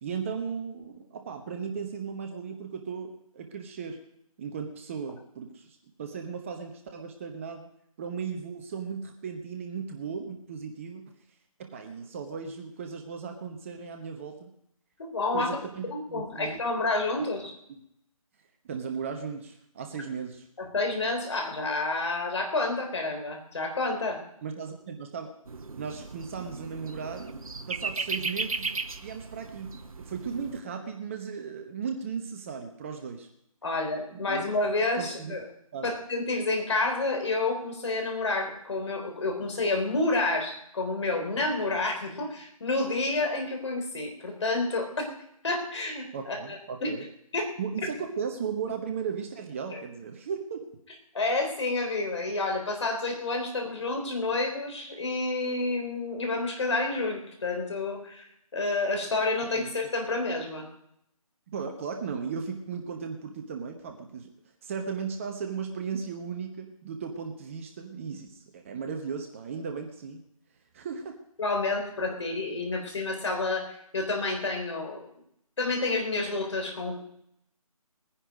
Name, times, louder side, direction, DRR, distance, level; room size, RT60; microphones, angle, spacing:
voice 1, 0.0-4.0 4.4-5.7 6.0-7.7 8.0-11.1 11.6-14.5 15.3-16.6 17.7-17.8 18.6-20.4 24.4-25.3 25.8-27.3 27.7-29.7 30.0-33.3 34.1-34.4 35.0-35.3 35.7-35.9 46.1-47.0 47.6-50.6 59.6-59.7 61.5-64.3 64.6-70.2 70.7-71.2, right 6 dB, 20° right, 4 dB, 0.9 m, -36 dB
voice 2, 15.0-15.6 15.9-17.5 20.6-24.2 33.6-35.5 35.8-45.1 45.4-46.9 47.3-47.5 51.1-58.3 58.5-60.7 71.4-75.0 75.6-77.0, left 2 dB, 50° left, 3 dB, 3.8 m, -29 dB
sound 1, 25.5-30.6, right 4 dB, 70° right, 1.0 m, -36 dB
20.0 x 10.0 x 5.0 m, 0.74 s
figure-of-eight pair, 155°, 19 cm